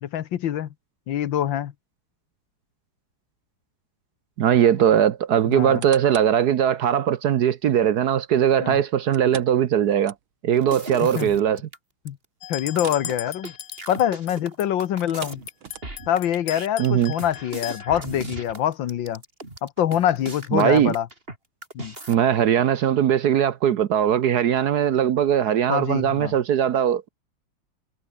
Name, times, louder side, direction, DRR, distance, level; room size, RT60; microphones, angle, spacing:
voice 1, 0.0-0.7 1.1-1.7 5.5-5.8 8.6-8.8 11.2-11.3 12.1-12.2 12.5-13.5 13.9-15.4 16.1-19.2 19.6-21.1 21.8-21.9 25.7-26.3, left 10 dB, 75° left, 1.7 m, -25 dB
voice 2, 4.4-10.1 10.4-11.6 16.8-17.1 20.5-20.9 22.1-27.1, right 9 dB, 60° right, 1.2 m, -20 dB
sound 1, 5.5-6.4 6.9-7.0 9.1-10.6 10.9-11.0 11.5-11.6 12.7-13.1 13.4-13.6 14.9-16.2 16.8-16.9, right 9 dB, 90° right, 2.4 m, -42 dB
sound 2, 10.6-11.8 12.1-12.2 12.4-21.4 21.6-22.2, right 2 dB, 25° right, 4.8 m, -37 dB
sound 3, 12.4-14.3 14.6-18.0, left 13 dB, 90° left, 1.7 m, -37 dB
omnidirectional pair, 2.2 m